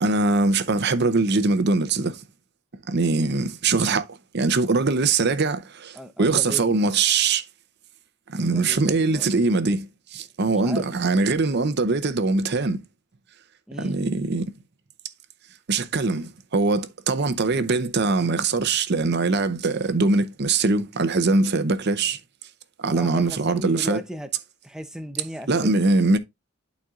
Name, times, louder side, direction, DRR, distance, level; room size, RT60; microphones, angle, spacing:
voice 1, 0.0-2.2 2.9-7.4 8.3-12.8 13.8-14.5 15.7-22.2 22.8-24.0 25.5-26.2, right 3 dB, 50° right, 0.7 m, -22 dB
voice 2, 5.9-6.8 8.4-9.3 10.4-10.9 13.7-14.0 22.9-24.3 24.6-25.8, equal, 5° right, 0.6 m, -36 dB
11.5 x 4.2 x 2.4 m
head